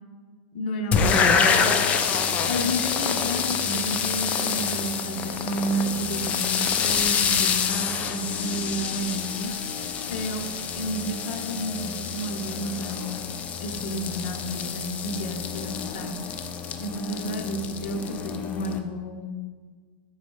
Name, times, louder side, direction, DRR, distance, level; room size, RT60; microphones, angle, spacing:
voice 1, 0.5-1.7 2.4-9.5 10.1-10.5 10.7-13.1 13.6-16.2 16.8-19.3, equal, 65° left, 4 dB, 0.9 m, -31 dB
sound 1, 0.9-18.8, left 6 dB, 25° left, 0.4 m, -27 dB
5.3 x 4.0 x 4.8 m, 1.5 s
supercardioid pair, 150°, 6 cm